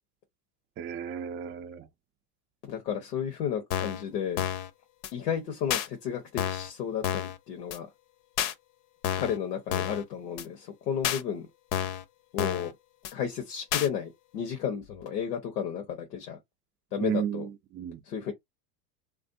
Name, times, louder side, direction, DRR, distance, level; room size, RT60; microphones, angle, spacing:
voice 1, 0.8-1.9 17.0-18.0, right 8 dB, 25° right, 0.4 m, -33 dB
voice 2, 2.7-4.4 5.1-7.9 9.2-11.5 12.3-12.7 13.1-16.4 16.9-17.5 18.1-18.3, left 8 dB, 90° left, 1.0 m, -33 dB
sound 1, 3.7-4.0 4.4-4.7 5.0-5.1 5.7-5.9 6.4-6.7 7.0-7.4 7.7-7.8 8.4-8.5 9.0-9.4 9.7-10.0 10.4-10.5 11.0-11.2 11.7-12.0 12.4-12.7 13.0-13.1 13.7-13.9, left 10 dB, 65° left, 0.7 m, -30 dB
3.2 x 2.5 x 2.6 m
hypercardioid pair, 100°, 47 cm